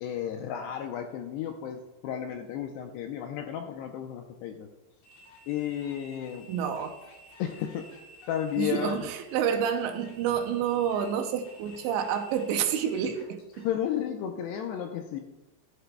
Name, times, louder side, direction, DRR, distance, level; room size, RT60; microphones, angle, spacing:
voice 1, 0.0-4.7 5.5-6.5 7.4-7.9 8.3-9.1 13.6-15.2, left 10 dB, 85° left, 4 dB, 2.5 m, -33 dB
sound 1, 5.0-13.7, left 1 dB, 65° left, 5.0 m, -53 dB
voice 2, 6.5-7.0 8.6-13.7, right 8 dB, 80° right, 6 dB, 3.0 m, -29 dB
14.5 x 12.0 x 2.3 m, 1.0 s
omnidirectional pair, 5.4 m